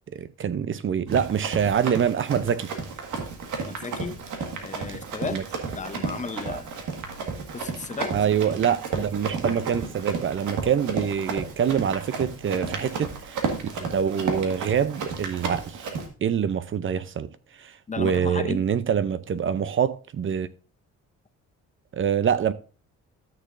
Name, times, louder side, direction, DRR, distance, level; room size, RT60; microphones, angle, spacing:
voice 1, 0.1-2.7 4.9-5.0 5.2-5.4 6.5-6.6 8.1-13.4 13.8-15.9 16.2-17.3 17.6-20.5 21.9-22.5, right 8 dB, 40° right, 0.6 m, -25 dB
Run, 1.1-16.1, right 5 dB, 80° right, 1.7 m, -32 dB
voice 2, 3.5-4.2 4.6-5.4 5.8-6.7 7.5-8.1 17.9-18.6, left 5 dB, 25° left, 0.8 m, -34 dB
13.0 x 6.6 x 2.6 m
cardioid pair, 90°, 30 cm